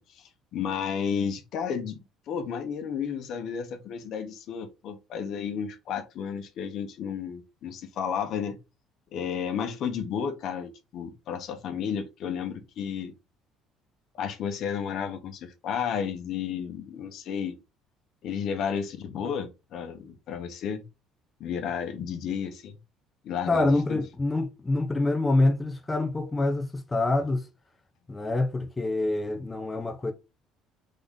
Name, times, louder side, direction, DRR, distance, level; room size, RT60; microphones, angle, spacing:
voice 1, 0.1-2.0 2.3-8.6 9.1-13.1 14.2-17.6 18.2-20.8 21.4-22.8 23.2-24.0, left 7 dB, 55° left, 1.0 m, -32 dB
voice 2, 23.5-27.5 28.1-30.1, left 2 dB, 15° left, 0.6 m, -26 dB
3.8 x 3.7 x 3.6 m
cardioid pair, 130°, 0 cm